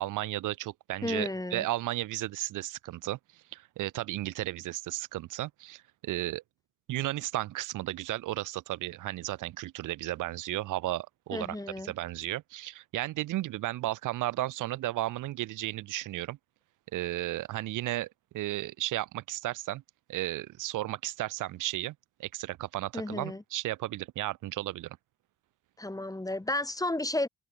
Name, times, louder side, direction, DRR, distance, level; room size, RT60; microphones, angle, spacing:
voice 1, 0.0-3.2 3.5-6.4 6.9-11.6 11.8-16.4 16.9-18.1 18.3-19.8 20.1-21.9 22.2-25.0, right 16 dB, 90° right, 2.8 m, -34 dB
voice 2, 1.0-1.6 11.3-11.9 22.9-23.4 25.8-27.3, left 1 dB, 10° left, 7.6 m, -32 dB
open air
cardioid pair, 90°, 30 cm